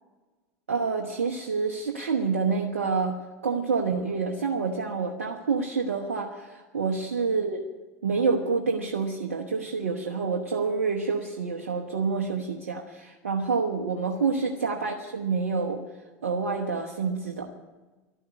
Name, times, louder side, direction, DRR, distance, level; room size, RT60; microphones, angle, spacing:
voice 1, 0.7-7.6 8.0-15.8 16.2-17.5, right 5 dB, 80° right, 0 dB, 1.1 m, -28 dB
12.0 x 10.5 x 9.5 m, 1.2 s
hypercardioid pair, 80°, 7 cm